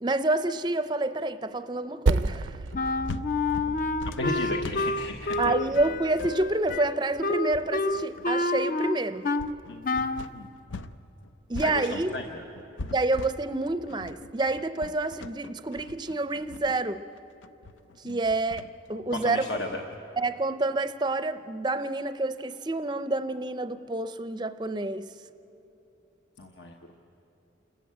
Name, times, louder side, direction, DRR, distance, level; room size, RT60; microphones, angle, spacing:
voice 1, 0.0-2.6 5.4-9.3 11.5-12.2 12.9-17.0 18.0-18.6 18.9-19.5 20.2-25.1, right 2 dB, 25° right, 11 dB, 0.5 m, -28 dB
Percussion, 2.1-6.9, right 3 dB, 85° right, 0.5 m, -32 dB
sound 1, 2.7-11.0 11.2-20.0, left 2 dB, 85° left, 0.6 m, -42 dB
Wind instrument woodwind instrument, 2.7-9.5 9.8-10.3, left 2 dB, 45° left, 0.5 m, -29 dB
voice 2, 4.1-5.5 9.7-10.5 11.6-12.4 18.0-18.2 19.1-19.8 26.4-26.8, left 2 dB, 70° left, 2 dB, 1.1 m, -34 dB
28.5 x 14.0 x 8.7 m, 2.9 s
head